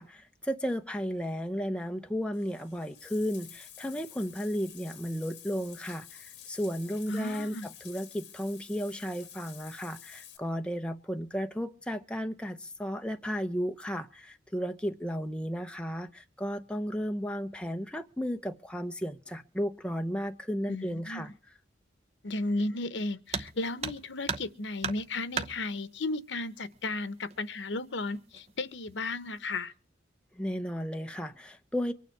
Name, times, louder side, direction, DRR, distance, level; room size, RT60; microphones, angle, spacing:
voice 1, 0.0-21.3 30.4-31.9, equal, 5° left, 0.7 m, -34 dB
Bathtub (filling or washing), 2.3-10.4, left 10 dB, 60° left, 2.0 m, -50 dB
voice 2, 7.1-7.7 20.7-21.3 22.2-29.7, left 2 dB, 80° left, 1.0 m, -34 dB
sound 1, 23.3-23.5 23.8-24.5 24.8-25.5 26.7-26.8 27.3-27.4 28.1-28.5 28.9-29.3, right 5 dB, 35° right, 0.9 m, -34 dB
24.0 x 9.3 x 4.6 m
head